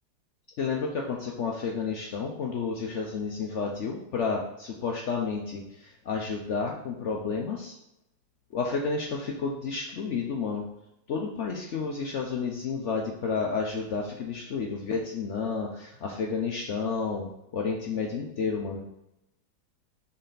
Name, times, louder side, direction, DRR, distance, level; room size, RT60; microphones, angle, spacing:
voice 1, 0.6-7.7 8.5-10.7 11.1-18.8, left 5 dB, 85° left, 0 dB, 0.6 m, -31 dB
6.5 x 4.3 x 3.9 m, 0.87 s
omnidirectional pair, 2.1 m